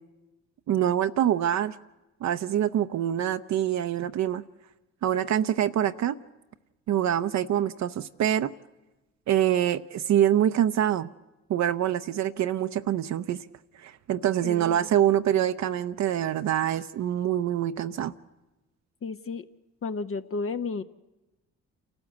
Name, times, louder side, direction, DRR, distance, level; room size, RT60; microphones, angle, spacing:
voice 1, 0.7-1.8 2.2-4.4 5.0-6.2 6.9-8.5 9.3-11.1 11.5-13.4 13.8-18.1, right 11 dB, 55° right, 0.7 m, -25 dB
voice 2, 19.0-19.5 19.8-20.8, left 4 dB, 40° left, 0.8 m, -32 dB
28.0 x 13.0 x 8.4 m
hypercardioid pair, 60°, 34 cm